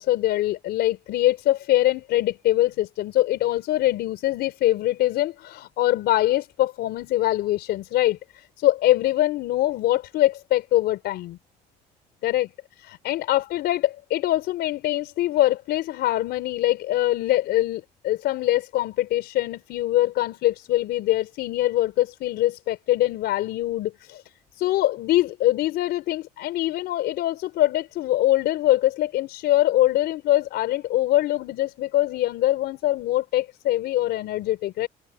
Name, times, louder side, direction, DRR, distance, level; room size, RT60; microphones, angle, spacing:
voice 1, 0.0-11.4 12.2-12.5 12.8-24.2 24.6-34.9, left 15 dB, 80° left, 4.4 m, -23 dB
cardioid pair, 110°, 17 cm